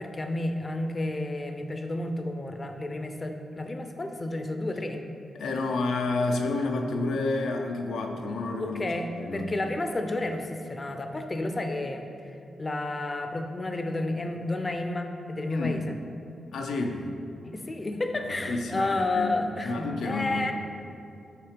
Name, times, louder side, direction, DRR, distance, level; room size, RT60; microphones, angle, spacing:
voice 1, 0.0-5.0 8.6-15.9 17.4-20.5, left 2 dB, 30° left, 6 dB, 0.5 m, -31 dB
voice 2, 5.3-8.8 9.1-9.5 15.5-15.8 16.5-17.1 18.1-19.3 19.6-20.5, left 3 dB, 85° left, 3 dB, 0.5 m, -30 dB
5.9 x 3.2 x 5.0 m, 2.6 s
cardioid pair, 70°, 0 cm